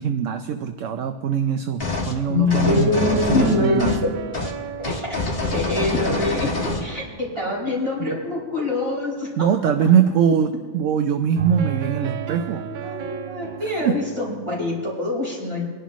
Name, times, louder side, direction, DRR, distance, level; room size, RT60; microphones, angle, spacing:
voice 1, 0.0-3.9 9.4-12.7 13.8-13.9, right 7 dB, 70° right, 8 dB, 1.0 m, -22 dB
sound 1, 1.8-2.2 2.5-4.1 4.3-4.5 4.8-6.9, left 3 dB, 45° left, 1.8 m, -26 dB
voice 2, 2.3-4.1 4.9-5.1 5.5-6.5 6.8-9.3 12.6-15.6, left 2 dB, 20° right, -6 dB, 4.7 m, -24 dB
sound 2, 2.5-8.3 11.4-14.9, right 10 dB, 90° right, 0.4 m, -34 dB
25.0 x 11.0 x 3.1 m, 1.5 s
omnidirectional pair, 1.4 m